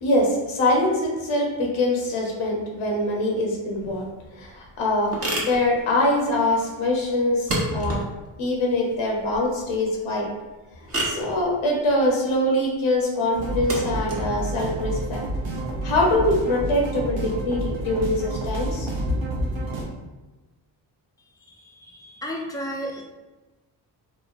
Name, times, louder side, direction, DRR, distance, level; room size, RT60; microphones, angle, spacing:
voice 1, 0.0-4.0 4.4-5.1 5.4-8.0 8.4-10.3 11.0-15.2 15.8-19.3, left 1 dB, 80° left, -1 dB, 0.7 m, -23 dB
sound 1, 3.7-16.1, right 1 dB, 30° right, 0.8 m, -34 dB
sound 2, 13.3-19.8, right 2 dB, 70° right, 0.7 m, -29 dB
voice 2, 21.4-23.0, equal, 10° left, -1 dB, 0.4 m, -33 dB
3.0 x 2.1 x 2.4 m, 1.2 s
cardioid pair, 65°, 47 cm